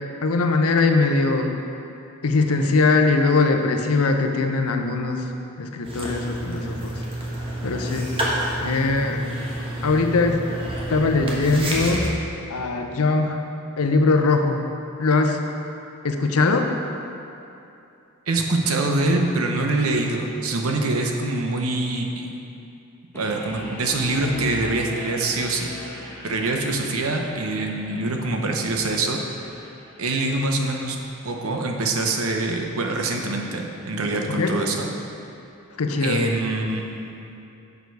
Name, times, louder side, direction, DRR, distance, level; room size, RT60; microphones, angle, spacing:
voice 1, 0.2-1.5 2.2-5.2 5.6-7.0 7.6-8.1 8.6-9.2 9.8-10.5 10.9-12.1 12.5-13.4 13.8-14.6 15.0-15.4 16.0-16.7 34.3-34.6 35.8-36.2, left 3 dB, 75° left, 5 dB, 0.7 m, -21 dB
sound 1, 5.8-12.1, right 1 dB, 25° right, 1.2 m, -29 dB
voice 2, 18.3-22.4 23.1-29.7 30.0-31.0 31.2-34.9 36.0-37.1, right 2 dB, 70° right, 2 dB, 0.8 m, -25 dB
sound 2, 23.1-34.2, left 1 dB, 10° left, 1.1 m, -41 dB
6.9 x 6.8 x 4.6 m, 2.7 s
head